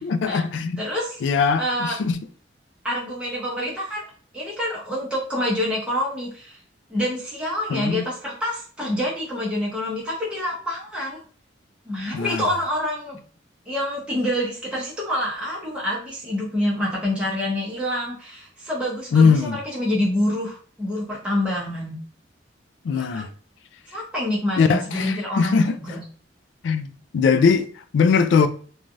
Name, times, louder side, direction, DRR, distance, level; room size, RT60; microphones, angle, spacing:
voice 1, 0.0-0.8 1.2-2.2 7.7-8.1 12.1-12.5 19.1-19.6 22.8-23.3 24.6-25.8 26.6-28.5, left 5 dB, 70° left, 0.3 m, -20 dB
voice 2, 0.8-1.2 1.6-2.0 2.8-4.0 4.3-6.6 6.9-11.2 11.9-13.2 13.7-22.0 22.9-23.3 23.9-26.0, left 1 dB, 5° right, 0.8 m, -27 dB
3.1 x 2.3 x 2.6 m
head